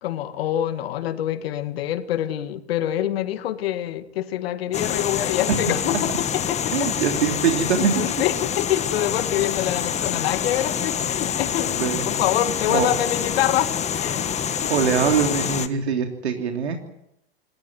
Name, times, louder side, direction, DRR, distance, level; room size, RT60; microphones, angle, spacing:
voice 1, 0.0-7.2 7.8-13.7 14.0-14.3 14.6-14.7, left 12 dB, 65° left, 11 dB, 2.0 m, -26 dB
sound 1, 4.7-15.7, left 8 dB, 20° left, 1.5 m, -26 dB
voice 2, 6.7-7.9 11.8-12.0 12.7-12.9 14.7-16.8, right 7 dB, 85° right, 4 dB, 3.3 m, -22 dB
27.0 x 14.0 x 9.5 m, 0.78 s
hypercardioid pair, 125°, 33 cm